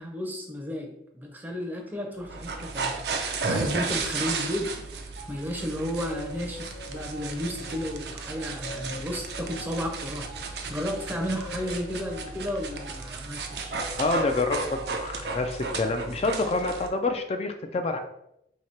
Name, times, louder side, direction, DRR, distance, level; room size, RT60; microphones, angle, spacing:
voice 1, 0.0-13.8, equal, 10° right, 1 dB, 0.6 m, -33 dB
sound 1, 2.2-16.9, right 4 dB, 65° right, 0.5 m, -34 dB
sound 2, 5.2-5.3 5.8-15.5, left 1 dB, 80° left, 0.9 m, -44 dB
voice 2, 14.0-18.0, left 3 dB, 35° left, 6 dB, 0.3 m, -27 dB
2.9 x 2.8 x 4.4 m, 0.79 s
head